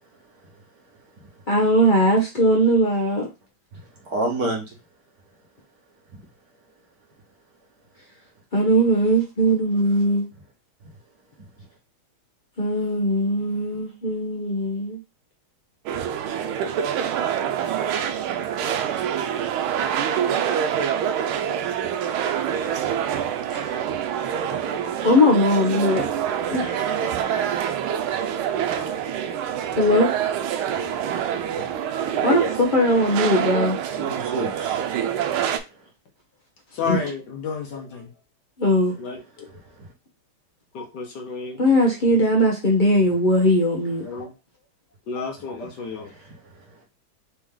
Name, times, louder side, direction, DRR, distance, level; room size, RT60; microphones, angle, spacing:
voice 1, 1.5-3.2 8.5-10.3 12.6-15.0 23.5-23.8 25.0-26.1 26.5-27.0 29.7-30.1 32.2-33.8 36.8-37.0 38.6-38.9 41.6-44.0, equal, 90° left, 0.4 m, -20 dB
voice 2, 3.7-4.7 6.1-6.2 11.4-11.5 30.7-31.7 34.0-35.8 39.4-39.9 44.2-44.3 45.8-46.8, right 2 dB, 50° right, 1.6 m, -32 dB
sound 1, 15.9-35.6, right 9 dB, 90° right, 1.5 m, -26 dB
voice 3, 36.7-38.1 39.0-39.5 40.7-41.6 44.0-44.3 45.1-46.1, left 5 dB, 60° left, 1.4 m, -31 dB
4.2 x 3.1 x 3.6 m
omnidirectional pair, 2.2 m